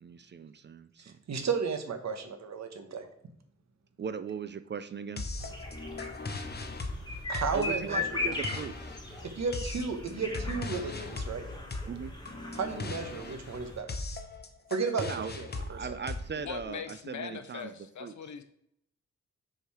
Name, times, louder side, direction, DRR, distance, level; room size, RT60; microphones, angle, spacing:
voice 1, 0.0-1.2 4.0-5.2 7.5-8.9 11.9-12.1 15.0-17.7 18.0-18.1, right 6 dB, 40° right, 12 dB, 0.4 m, -39 dB
voice 2, 1.0-3.1 7.3-8.0 9.3-11.4 12.5-14.0 14.7-15.8, right 5 dB, 65° right, 7 dB, 1.1 m, -33 dB
sound 1, 5.2-16.9, left 3 dB, 35° left, 0.8 m, -39 dB
sound 2, 5.4-13.8, left 3 dB, 15° left, 1.2 m, -39 dB
voice 3, 16.4-18.4, left 7 dB, 75° left, 9 dB, 0.8 m, -41 dB
6.4 x 4.6 x 4.8 m, 0.73 s
wide cardioid pair, 155°, 29 cm